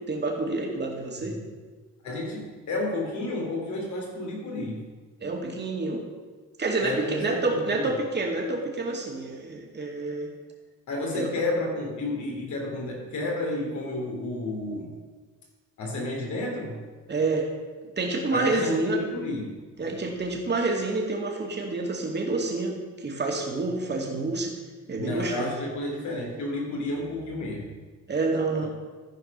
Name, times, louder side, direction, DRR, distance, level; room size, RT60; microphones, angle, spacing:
voice 1, 0.1-1.4 5.2-6.0 6.6-10.3 11.1-11.3 17.1-17.5 18.0-19.0 19.8-24.5 24.9-25.5 28.1-28.7, right 3 dB, 35° right, 0 dB, 2.3 m, -28 dB
voice 2, 2.0-4.8 6.8-7.9 10.9-14.9 15.8-16.8 18.3-19.6 25.0-27.7 28.6-28.7, left 2 dB, 70° left, -1 dB, 3.3 m, -31 dB
14.0 x 5.1 x 5.5 m, 1.4 s
cardioid pair, 90°, 30 cm